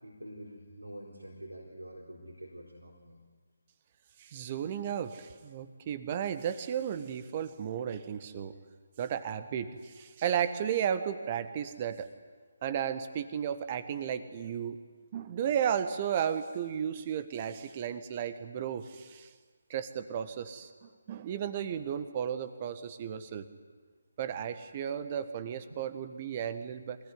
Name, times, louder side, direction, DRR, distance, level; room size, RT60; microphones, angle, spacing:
voice 1, 0.0-3.2 25.7-25.8, right 1 dB, 90° right, -3 dB, 4.4 m, -47 dB
voice 2, 4.2-8.5 9.0-12.1 12.6-14.8 15.1-19.3 19.7-23.5 24.2-27.0, right 8 dB, 30° right, 11 dB, 1.5 m, -34 dB
25.5 x 18.5 x 9.8 m, 1.5 s
figure-of-eight pair, 145°, 0 cm